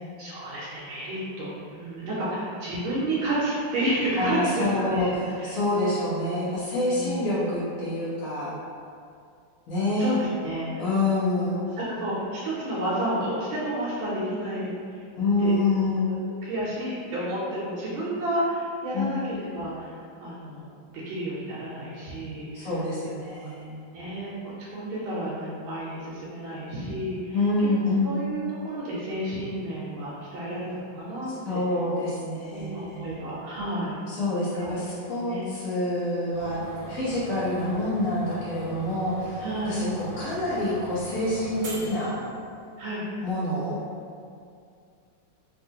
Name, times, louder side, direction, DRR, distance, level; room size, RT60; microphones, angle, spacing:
voice 1, 0.2-5.6 6.9-7.4 10.0-10.8 11.8-15.0 15.4-15.5 15.9-16.1 16.4-20.6 20.9-22.7 23.9-27.7 28.0-31.6 32.5-34.0 34.6-34.7 35.2-35.5 37.3-37.8 39.4-39.8 42.8-43.0, right 1 dB, 85° right, -8 dB, 1.5 m, -31 dB
voice 2, 4.2-8.5 9.7-10.2 10.8-11.6 15.2-16.1 18.9-19.1 22.5-23.8 27.3-28.2 31.5-33.2 34.1-39.9 40.2-42.2 43.2-43.8, left 2 dB, 60° left, -9 dB, 0.9 m, -27 dB
sound 1, 36.3-42.8, right 2 dB, 65° right, 1.5 m, -40 dB
3.6 x 2.4 x 2.7 m, 2.3 s
omnidirectional pair, 2.3 m